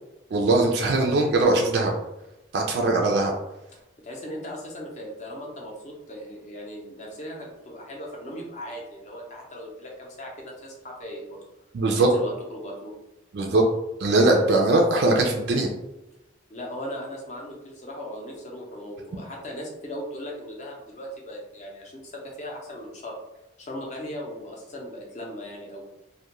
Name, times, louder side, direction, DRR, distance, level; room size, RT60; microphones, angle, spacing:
voice 1, 0.3-1.9 2.5-3.3 11.7-12.1 13.3-13.6 14.0-15.7, right 2 dB, 55° right, 1 dB, 0.3 m, -21 dB
voice 2, 4.0-11.4 12.0-12.9 16.5-23.2 23.6-25.9, equal, 35° left, -1 dB, 0.5 m, -38 dB
2.3 x 2.1 x 2.9 m, 0.96 s
head